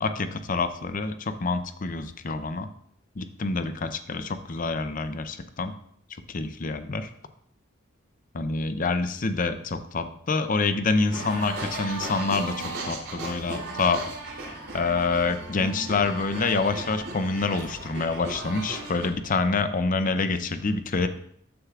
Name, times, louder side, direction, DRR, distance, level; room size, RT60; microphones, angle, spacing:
voice 1, 0.0-2.7 3.2-5.7 6.3-7.1 8.3-14.0 14.7-21.1, left 3 dB, 40° left, 10 dB, 0.6 m, -27 dB
sound 1, 11.1-19.1, right 2 dB, 85° right, 3.3 m, -36 dB
13.0 x 6.5 x 2.4 m, 0.67 s
head